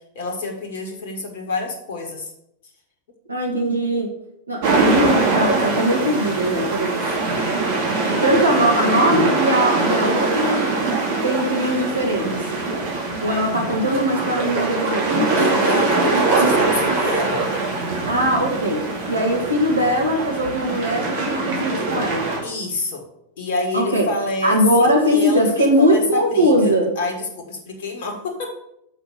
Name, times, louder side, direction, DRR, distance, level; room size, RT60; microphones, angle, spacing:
voice 1, 0.1-2.3 7.0-7.2 15.2-17.4 22.4-23.0 23.4-28.5, left 2 dB, 55° left, 3 dB, 1.7 m, -27 dB
voice 2, 3.3-4.1 4.5-7.0 8.1-10.6 11.2-12.4 13.2-15.8 18.1-22.3 23.7-24.1 24.4-26.9, equal, 80° right, 0 dB, 2.1 m, -20 dB
sound 1, 4.6-22.4, right 3 dB, 50° right, 2.5 m, -22 dB
6.4 x 6.2 x 7.1 m, 0.78 s
figure-of-eight pair, 90°, 0 cm